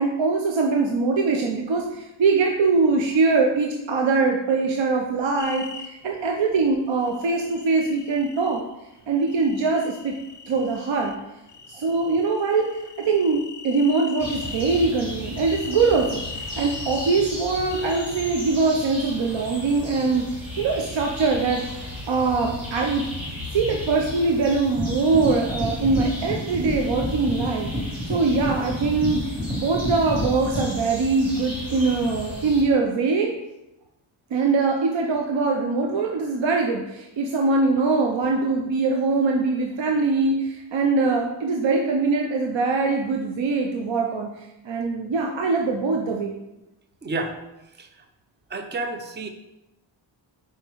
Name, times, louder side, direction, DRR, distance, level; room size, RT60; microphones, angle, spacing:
voice 1, 0.0-8.6 9.1-10.1 10.5-11.2 11.7-20.3 20.6-21.6 22.1-23.1 23.5-33.3 34.3-46.4, right 4 dB, 70° right, 1 dB, 0.7 m, -22 dB
sound 1, 5.4-5.9 7.0-8.6 9.2-11.2 11.5-14.9 15.4-17.2 17.7-18.5, left 4 dB, 40° left, 0.4 m, -39 dB
sound 2, 14.2-32.6, left 1 dB, 45° right, 2.4 m, -35 dB
sound 3, 24.8-30.7, equal, ahead, 1.4 m, -29 dB
voice 2, 47.0-47.3 47.8-47.9 48.5-49.3, right 2 dB, 25° right, 7 dB, 0.5 m, -30 dB
5.3 x 4.7 x 4.5 m, 0.95 s
wide cardioid pair, 160°, 47 cm